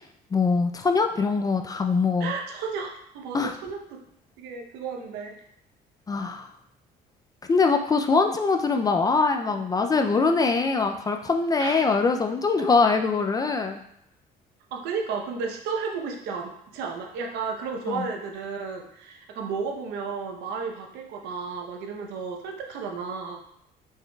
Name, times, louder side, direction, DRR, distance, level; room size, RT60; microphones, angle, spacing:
voice 1, 0.3-2.3 3.3-3.5 6.1-6.5 7.5-13.8 17.9-18.1, left 4 dB, 20° left, 5 dB, 0.4 m, -23 dB
voice 2, 2.2-4.0 4.4-5.4 11.6-11.8 14.7-23.4, right 5 dB, 85° right, 2 dB, 0.8 m, -33 dB
4.7 x 4.5 x 2.3 m, 0.74 s
cardioid pair, 110°, 17 cm